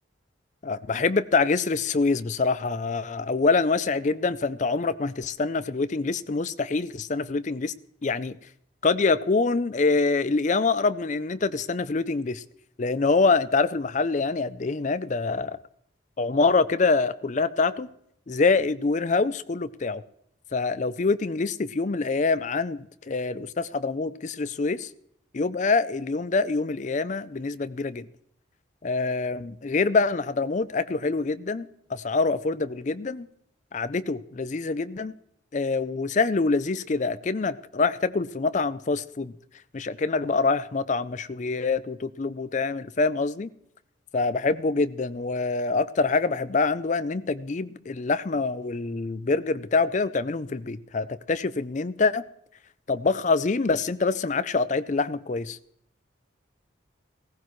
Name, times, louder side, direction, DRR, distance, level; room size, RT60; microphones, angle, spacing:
voice 1, 0.6-7.7 8.0-8.4 8.8-12.4 12.8-15.6 16.2-17.9 18.3-20.0 20.5-24.9 25.3-28.1 28.8-33.3 33.7-35.1 35.5-39.3 39.7-43.5 44.1-52.2 52.9-55.6, left 4 dB, 40° left, 0.5 m, -25 dB
16.5 x 15.0 x 3.1 m
head